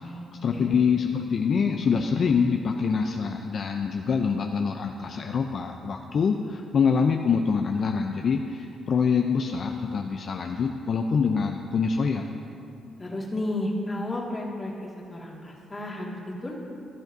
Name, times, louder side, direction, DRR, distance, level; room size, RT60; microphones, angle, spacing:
voice 1, 0.4-12.3, left 5 dB, 55° left, 3 dB, 0.5 m, -25 dB
voice 2, 13.0-16.5, left 1 dB, 25° left, -3 dB, 2.0 m, -32 dB
15.0 x 11.0 x 2.7 m, 2.7 s
cardioid pair, 90°, 0 cm